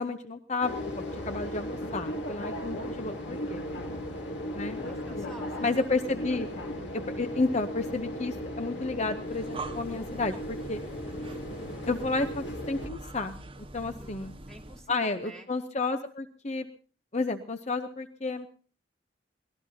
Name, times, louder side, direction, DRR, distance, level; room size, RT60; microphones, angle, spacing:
voice 1, 0.0-3.6 4.5-4.8 5.6-6.5 7.1-10.8 11.9-13.3 13.7-14.3 14.9-16.7 17.1-18.5, left 3 dB, 35° left, 8 dB, 0.7 m, -31 dB
sound 1, 0.6-12.9, equal, 75° left, 2.4 m, -36 dB
voice 2, 4.7-5.7 13.8-15.5, right 1 dB, 5° left, -2 dB, 3.1 m, -49 dB
Breathing, 9.1-14.9, right 2 dB, 30° right, 1.4 m, -44 dB
24.5 x 19.0 x 2.8 m, 0.43 s
head